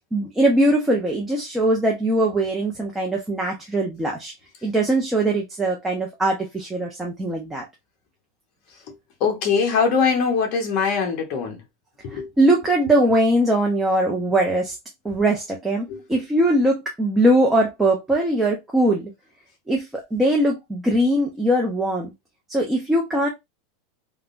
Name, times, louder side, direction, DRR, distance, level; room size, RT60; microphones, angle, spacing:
voice 1, 0.1-4.3 4.6-7.6 12.4-14.7 15.0-19.1 19.7-22.1 22.5-23.3, right 1 dB, 5° right, 0.5 m, -21 dB
voice 2, 9.2-11.6 12.0-12.3 15.9-16.0, left 5 dB, 40° left, 0.9 m, -22 dB
3.5 x 2.0 x 2.4 m
supercardioid pair, 165°, 2 cm